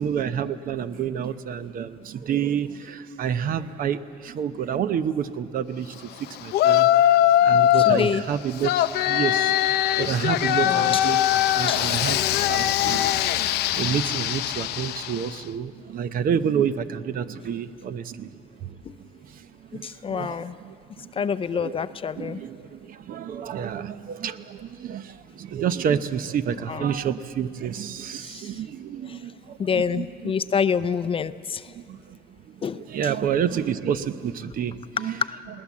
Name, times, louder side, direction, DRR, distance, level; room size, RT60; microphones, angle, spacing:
voice 1, 0.0-18.3 18.6-18.8 19.2-21.1 21.5-21.8 22.2-30.3 31.7-32.2 32.5-32.6 32.9-35.2, right 8 dB, 55° right, 12 dB, 0.8 m, -29 dB
Yell, 6.5-8.1 8.6-15.3, left 12 dB, 75° left, 0.6 m, -21 dB
voice 2, 7.7-8.2 10.6-11.1 11.7-11.8 19.8-20.5 21.2-22.4 26.7-26.9 29.6-31.6 32.6-32.8, left 6 dB, 30° left, 14 dB, 0.5 m, -26 dB
20.5 x 18.5 x 7.4 m, 2.4 s
cardioid pair, 110°, 17 cm